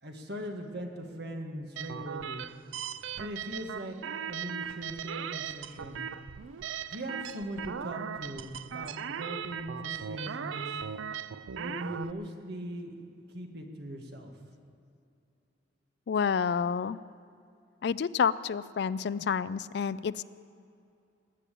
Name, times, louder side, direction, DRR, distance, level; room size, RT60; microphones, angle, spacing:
voice 1, 0.0-2.5 3.1-6.1 6.9-10.8 11.6-14.4, equal, 60° right, 3 dB, 1.8 m, -40 dB
sound 1, 1.8-12.1, right 8 dB, 90° right, 0.4 m, -38 dB
voice 2, 16.1-17.0 17.8-20.2, left 6 dB, 60° left, 18 dB, 0.3 m, -29 dB
19.0 x 8.5 x 8.4 m, 2.6 s
head